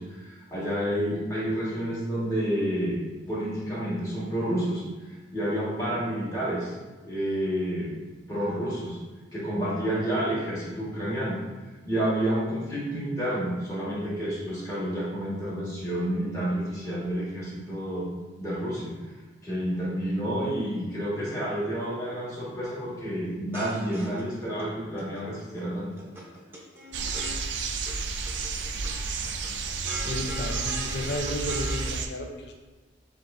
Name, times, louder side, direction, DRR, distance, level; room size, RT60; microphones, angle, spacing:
voice 1, 0.0-3.0 3.3-6.7 7.0-8.0 8.3-9.0 9.3-11.4 11.8-18.1 18.4-19.0 19.4-25.9, right 1 dB, 20° left, -8 dB, 1.4 m, -29 dB
sound 1, 23.3-24.6 25.0-25.6 25.9-27.9 28.2-28.9 29.3-31.9, equal, 15° right, 0.7 m, -40 dB
sound 2, 26.9-32.1, right 4 dB, 75° right, 0.4 m, -31 dB
voice 2, 30.0-32.7, left 1 dB, 65° left, 3 dB, 0.5 m, -33 dB
7.3 x 2.5 x 2.6 m, 1.2 s
head